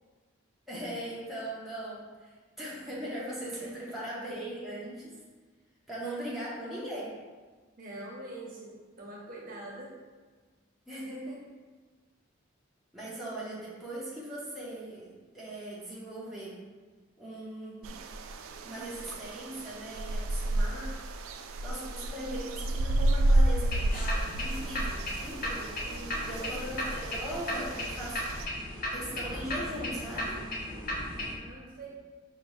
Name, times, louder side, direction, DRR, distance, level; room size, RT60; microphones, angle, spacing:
voice 1, 0.7-5.2 5.9-7.1 10.9-11.5 12.9-16.6 17.2-18.0 18.6-21.0 21.6-28.3 28.9-30.4, right 1 dB, ahead, -8 dB, 0.8 m, -39 dB
voice 2, 3.6-4.0 7.8-8.7 9.0-9.9 25.8-26.4 31.4-31.9, right 1 dB, 45° right, -4 dB, 0.8 m, -44 dB
sound 1, 17.8-28.5, right 1 dB, 85° right, 0.3 m, -31 dB
sound 2, 23.7-31.3, left 1 dB, 45° left, 0.9 m, -36 dB
5.0 x 2.6 x 3.1 m, 1.4 s
head